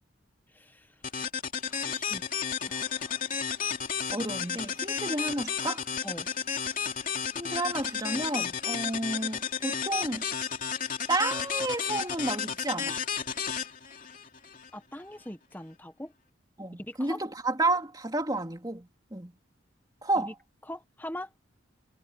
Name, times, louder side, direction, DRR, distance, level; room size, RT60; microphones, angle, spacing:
voice 1, 0.5-0.9 1.6-2.2 2.6-3.3 6.0-6.3 14.7-16.1 16.8-17.2 20.1-20.3 20.7-21.3, left 1 dB, 10° left, 1.5 m, -42 dB
sound 1, 1.0-14.7, left 7 dB, 45° left, 2.9 m, -33 dB
voice 2, 4.1-5.8 7.3-10.3 11.1-13.0 16.6-19.3 20.0-20.3, right 2 dB, 20° right, 3.2 m, -31 dB
head